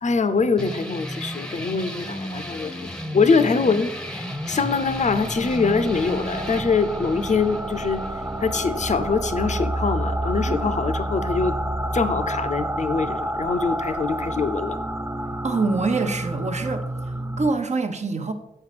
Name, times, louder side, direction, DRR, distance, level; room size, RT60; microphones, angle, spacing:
voice 1, 0.0-8.0 8.4-11.6 11.9-14.8, left 4 dB, 50° left, 12 dB, 0.6 m, -23 dB
sound 1, 0.6-9.6, equal, 5° left, 0.8 m, -34 dB
sound 2, 3.9-17.5, right 1 dB, 15° right, 0.4 m, -29 dB
voice 2, 15.3-16.9 17.4-18.3, right 3 dB, 50° right, 7 dB, 0.9 m, -25 dB
7.7 x 5.0 x 5.8 m, 0.89 s
wide cardioid pair, 90°, 15 cm